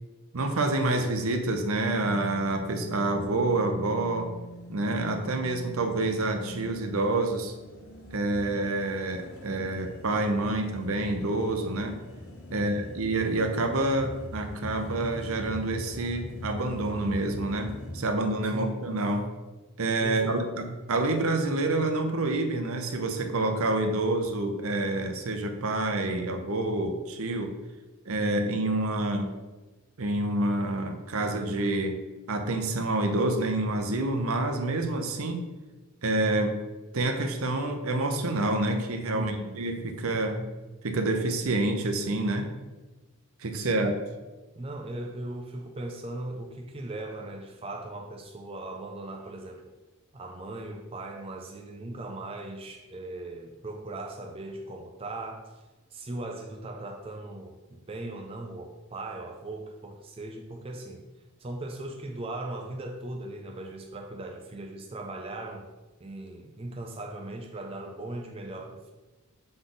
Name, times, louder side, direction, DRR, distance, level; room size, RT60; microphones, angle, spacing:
voice 1, 0.3-4.3 4.7-7.5 8.1-12.0 12.5-19.3 19.8-27.5 28.1-29.3 30.0-32.0 32.3-35.4 36.0-36.5 36.9-40.5 40.8-42.5 43.4-43.9, right 2 dB, 70° right, 6 dB, 0.7 m, -28 dB
sound 1, 1.9-18.0, equal, 75° left, 1.0 m, -43 dB
voice 2, 12.5-12.9 18.5-18.8 20.0-20.5 39.1-39.7 43.6-44.0 44.6-49.6 50.1-55.6 55.9-61.1 61.4-65.7 66.0-68.9, right 2 dB, 25° right, 2 dB, 0.4 m, -38 dB
6.5 x 4.0 x 3.9 m, 1.2 s
head